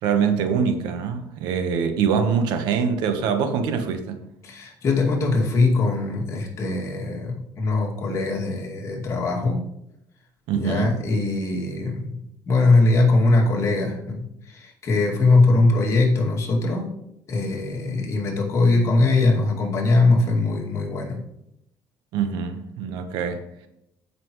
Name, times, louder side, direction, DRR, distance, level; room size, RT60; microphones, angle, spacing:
voice 1, 0.0-4.2 10.5-11.0 22.1-23.4, right 6 dB, 90° right, 1.2 m, -24 dB
voice 2, 4.4-9.6 10.5-16.9 17.3-21.2, left 3 dB, 40° left, 2.3 m, -21 dB
15.0 x 5.9 x 3.1 m
cardioid pair, 135°, 7 cm